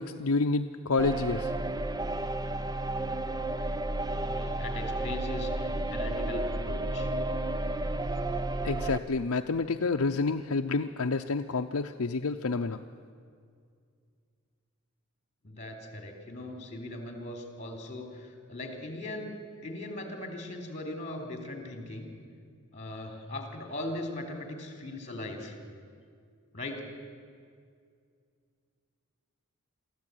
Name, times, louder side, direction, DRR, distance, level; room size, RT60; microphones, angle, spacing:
voice 1, 0.0-1.5 8.6-12.8, left 3 dB, 65° left, 6 dB, 0.6 m, -29 dB
sound 1, 1.0-9.0, right 2 dB, 15° right, 0.6 m, -32 dB
voice 2, 4.2-7.1 15.4-19.4 19.6-22.1 22.7-25.5 26.5-26.8, left 2 dB, 30° left, 4 dB, 3.3 m, -39 dB
23.5 x 14.5 x 9.1 m, 2.2 s
head